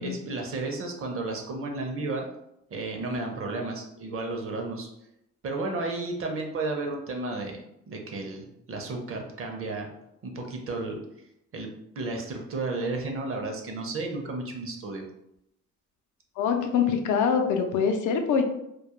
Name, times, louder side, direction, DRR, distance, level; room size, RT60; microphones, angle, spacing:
voice 1, 0.0-2.3 2.7-4.9 5.4-7.6 7.9-9.9 10.2-11.0 11.5-11.7 12.0-15.0, right 2 dB, 45° right, 2 dB, 0.6 m, -32 dB
voice 2, 16.4-18.4, left 6 dB, 75° left, 4 dB, 0.5 m, -24 dB
2.3 x 2.0 x 2.9 m, 0.81 s
cardioid pair, 90°, 30 cm